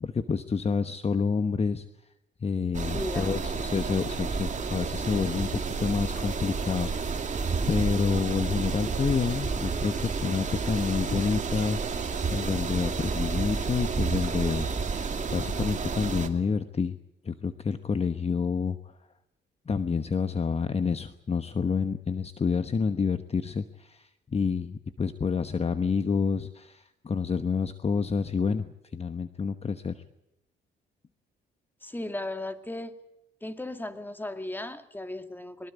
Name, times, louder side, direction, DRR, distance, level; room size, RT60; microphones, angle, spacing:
voice 1, 0.0-1.9 2.4-7.3 7.7-12.1 12.3-17.0 17.2-19.0 19.7-30.0, left 5 dB, 30° left, 10 dB, 1.1 m, -28 dB
sound 1, 2.7-16.3, right 5 dB, 40° right, 2.7 m, -30 dB
voice 2, 2.9-3.5 31.8-33.0 33.4-35.7, left 1 dB, 10° left, 8 dB, 2.2 m, -36 dB
23.0 x 21.5 x 8.2 m, 0.86 s
cardioid pair, 90°, 20 cm